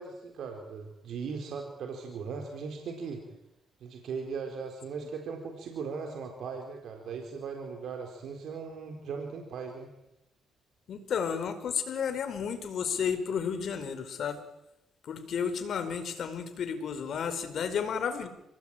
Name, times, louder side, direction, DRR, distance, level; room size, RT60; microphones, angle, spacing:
voice 1, 0.0-3.2 3.8-9.9, right 5 dB, 70° right, 3 dB, 4.5 m, -38 dB
voice 2, 10.9-14.4 15.0-18.3, left 7 dB, 65° left, 10 dB, 4.8 m, -32 dB
29.5 x 19.5 x 9.2 m, 0.85 s
cardioid pair, 90°, 0 cm